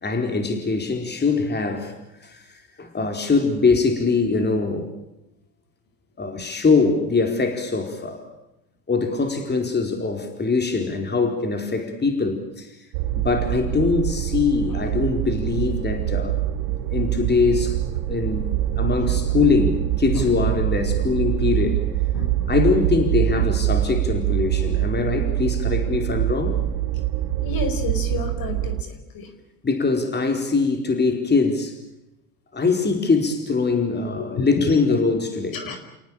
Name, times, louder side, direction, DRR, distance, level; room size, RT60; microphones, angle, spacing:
voice 1, 0.0-1.9 2.2-4.9 6.2-8.3 8.9-12.8 13.1-16.4 16.7-17.8 18.1-18.5 18.8-21.8 22.5-26.6 29.6-31.8 32.5-35.6, left 4 dB, 25° left, 5 dB, 4.5 m, -22 dB
sound 1, 12.9-28.8, right 13 dB, 80° right, 1.9 m, -24 dB
voice 2, 27.4-28.8 29.1-29.3 34.2-34.5 35.5-35.8, left 4 dB, 50° left, 8 dB, 5.2 m, -30 dB
30.0 x 18.5 x 8.9 m, 0.92 s
supercardioid pair, 85°, 44 cm